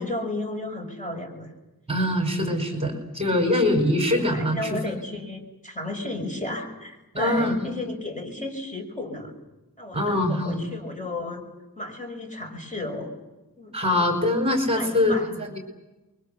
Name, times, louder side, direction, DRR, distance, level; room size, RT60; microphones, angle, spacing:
voice 1, 0.0-1.5 4.3-9.3 9.8-11.4 11.8-13.1 13.6-13.7 14.7-15.4, left 2 dB, 20° left, 3 dB, 5.8 m, -33 dB
voice 2, 1.9-5.0 7.1-7.6 9.9-10.6 13.7-15.6, left 1 dB, 15° right, 3 dB, 4.9 m, -23 dB
29.0 x 23.5 x 6.8 m, 1.0 s
wide cardioid pair, 95°, 37 cm